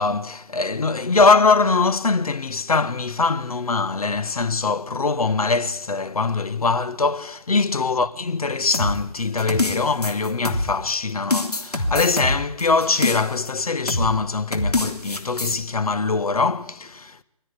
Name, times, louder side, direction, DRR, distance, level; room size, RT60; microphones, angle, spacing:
voice 1, 0.0-17.2, left 4 dB, 70° left, 1.4 m, -22 dB
sound 1, 8.7-10.9 11.3-13.5 13.9-14.1 14.5-15.6, left 2 dB, 90° left, 3.3 m, -25 dB
24.0 x 16.0 x 9.8 m
figure-of-eight pair, 150°, 19 cm